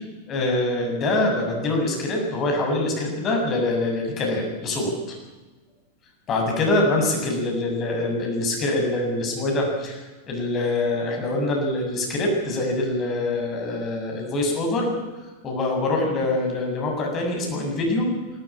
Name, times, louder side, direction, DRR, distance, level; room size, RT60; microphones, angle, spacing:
voice 1, 0.3-5.2 6.3-10.0 10.3-14.9 15.4-18.1, left 2 dB, 30° left, 1 dB, 7.5 m, -24 dB
19.5 x 18.0 x 8.8 m, 1.2 s
figure-of-eight pair, 90°, 0 cm